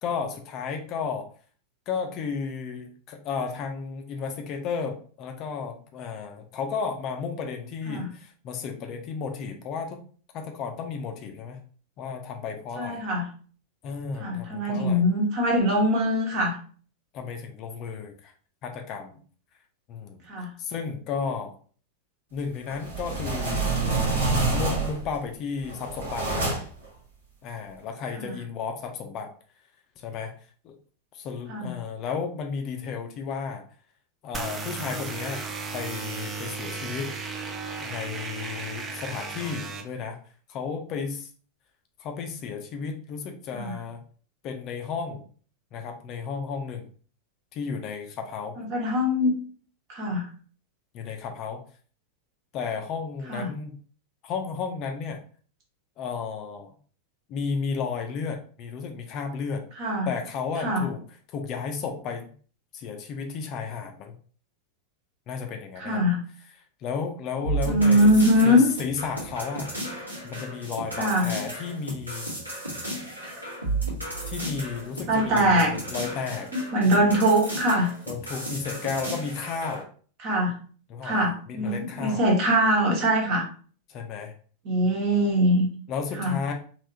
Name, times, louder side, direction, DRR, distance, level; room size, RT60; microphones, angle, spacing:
voice 1, 0.0-1.3 1.9-10.0 10.3-11.6 12.0-13.0 13.8-15.0 17.1-18.3 18.6-19.2 19.9-20.2 20.6-21.5 22.3-23.8 24.5-26.6 27.4-29.3 30.0-30.3 30.6-30.8 31.1-33.6 34.2-35.4 35.7-37.1 37.8-40.2 40.5-41.3 42.0-44.0 44.4-45.2 45.7-46.8 47.5-48.6 50.9-51.6 52.5-53.7 54.2-55.2 56.0-56.7 57.3-59.6 60.1-61.0 61.3-62.3 62.7-64.1 65.3-66.0 66.8-68.1 68.4-72.3 74.2-76.5 78.1-79.9 80.9-82.2 83.9-84.3 85.9-86.5, left 5 dB, 35° left, 4 dB, 0.5 m, -33 dB
voice 2, 12.8-13.3 14.2-16.6 20.3-20.5 28.2-28.3 31.5-31.7 43.5-43.7 48.6-49.4 49.9-50.2 53.3-53.5 59.8-60.1 60.6-60.9 65.8-66.2 67.6-68.7 70.9-71.3 75.1-75.7 76.5-77.9 80.2-80.5 81.0-83.4 84.6-85.7 86.2-86.4, equal, 40° right, -1 dB, 1.2 m, -22 dB
sound 1, 22.7-25.1 25.6-26.8, right 3 dB, 65° right, 1.2 m, -27 dB
sound 2, 34.3-39.8, right 4 dB, 20° right, 0.5 m, -35 dB
sound 3, 67.4-79.8, right 2 dB, 85° right, 1.3 m, -34 dB
3.3 x 2.8 x 2.7 m, 0.43 s
figure-of-eight pair, 90°, 0 cm